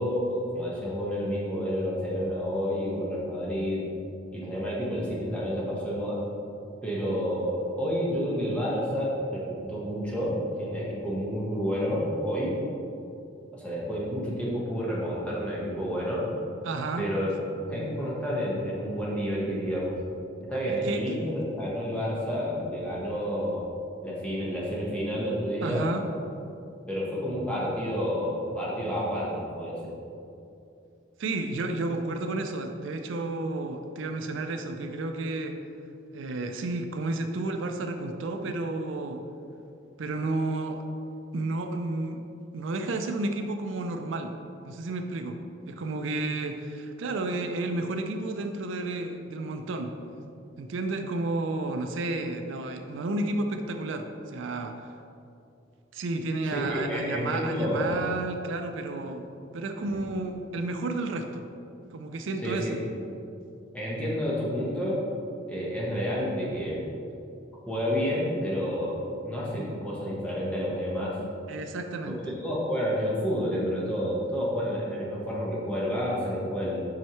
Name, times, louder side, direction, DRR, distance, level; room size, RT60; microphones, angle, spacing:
voice 1, 0.0-3.9 4.3-6.2 6.8-12.6 13.5-16.3 17.0-17.3 17.6-20.0 20.5-23.7 24.0-25.9 26.9-29.9 56.4-57.9 59.8-60.1 62.4-62.7 63.7-65.0 65.5-66.8 67.6-71.2 72.0-76.9, equal, 5° left, -6 dB, 1.2 m, -30 dB
voice 2, 16.6-17.1 20.7-21.0 25.6-26.1 31.2-35.6 36.1-39.2 40.0-40.8 41.3-42.2 42.5-44.3 44.6-45.4 45.7-50.2 50.6-54.8 55.9-59.3 59.5-61.5 61.9-62.8 71.5-72.3, right 2 dB, 75° right, 5 dB, 0.4 m, -31 dB
7.3 x 5.5 x 3.1 m, 2.6 s
head